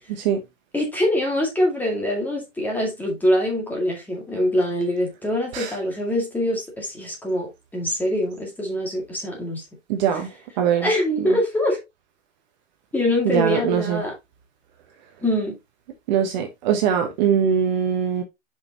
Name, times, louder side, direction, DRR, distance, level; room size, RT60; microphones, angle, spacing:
voice 1, 0.7-9.6 10.8-11.8 12.9-14.1 15.2-15.6, left 1 dB, 5° left, 2.1 m, -24 dB
voice 2, 9.9-10.3 10.6-10.9 13.2-14.0 16.1-18.2, right 8 dB, 35° right, 1.1 m, -22 dB
6.9 x 5.5 x 2.8 m
hypercardioid pair, 160°, 37 cm